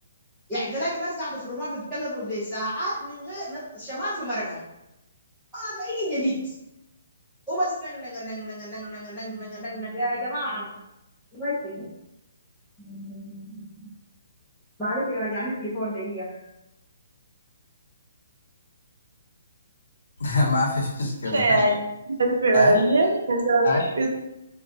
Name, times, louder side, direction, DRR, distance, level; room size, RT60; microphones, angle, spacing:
voice 1, 0.5-4.6 5.5-6.5 7.5-10.8 11.3-11.8 12.8-13.9 14.8-16.3, equal, ahead, -16 dB, 0.6 m, -30 dB
voice 2, 20.2-21.8 22.5-22.8 23.6-23.9, left 2 dB, 85° left, 0 dB, 0.7 m, -25 dB
voice 3, 21.3-21.7 22.2-24.1, right 2 dB, 75° right, 2 dB, 0.6 m, -20 dB
3.9 x 2.2 x 2.6 m, 0.89 s
hypercardioid pair, 180°, 0 cm